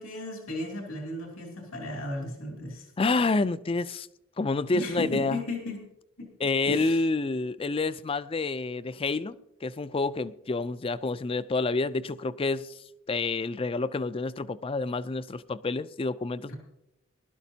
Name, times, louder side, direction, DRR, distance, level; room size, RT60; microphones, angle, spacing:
voice 1, 0.0-2.9 4.7-5.9 6.2-6.4 6.6-7.0 16.5-16.6, left 1 dB, 90° left, 2.8 m, -35 dB
voice 2, 3.0-4.1 4.4-5.4 6.4-9.4 9.6-12.7 13.1-16.5, left 3 dB, 25° left, 0.4 m, -28 dB
20.0 x 12.0 x 2.8 m
head